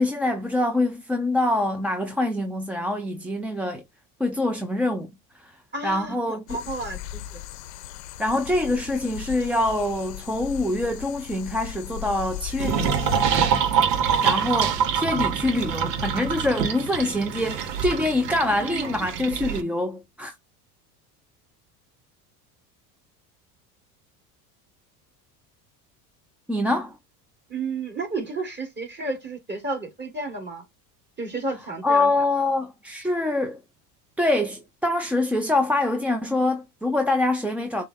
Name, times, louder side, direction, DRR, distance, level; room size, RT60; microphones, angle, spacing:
voice 1, 0.0-3.8 4.2-5.6 5.8-6.6 8.2-13.0 14.2-20.3 26.5-27.0 31.8-33.6 34.2-37.8, left 2 dB, 5° right, 0.5 m, -25 dB
voice 2, 5.7-7.4 18.6-19.0 27.5-30.6 31.2-32.1, right 3 dB, 20° right, 2.5 m, -32 dB
sound 1, 6.5-13.5, left 13 dB, 75° left, 0.7 m, -37 dB
sound 2, 12.6-19.6, right 7 dB, 85° right, 0.9 m, -25 dB
6.7 x 2.3 x 3.5 m
hypercardioid pair, 85°, 48 cm